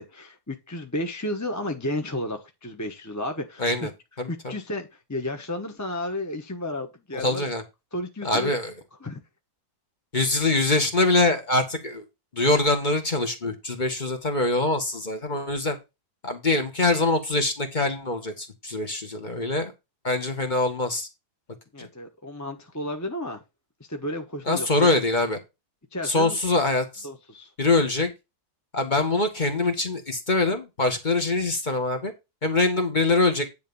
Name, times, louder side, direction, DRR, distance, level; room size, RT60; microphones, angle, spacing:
voice 1, 0.0-3.7 4.3-7.4 7.9-8.5 9.0-9.2 21.7-23.4 23.9-24.9 25.9-26.4 27.0-27.5, left 1 dB, 15° left, 5 dB, 1.0 m, -32 dB
voice 2, 3.6-3.9 4.2-4.5 7.1-7.6 8.2-8.7 10.1-12.0 12.3-15.8 16.2-19.7 20.0-21.1 21.8-21.9 24.5-25.4 26.0-27.1 27.6-28.1 28.7-32.1 32.4-33.5, left 2 dB, 30° left, 5 dB, 1.8 m, -24 dB
10.5 x 3.6 x 7.0 m, 0.24 s
omnidirectional pair, 1.7 m